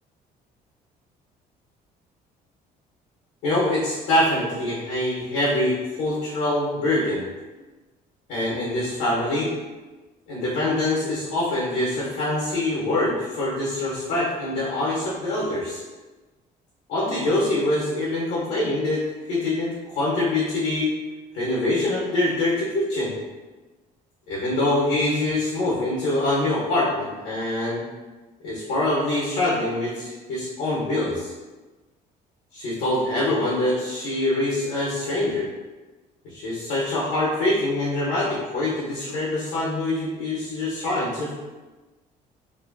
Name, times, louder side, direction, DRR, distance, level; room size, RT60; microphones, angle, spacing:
voice 1, 3.4-7.3 8.3-9.5 10.3-15.8 16.9-19.0 19.3-20.9 21.3-23.2 24.3-27.8 28.4-31.3 32.5-35.5 36.2-41.3, left 1 dB, 85° left, -6 dB, 0.7 m, -24 dB
2.6 x 2.3 x 2.2 m, 1.2 s
cardioid pair, 110°, 17 cm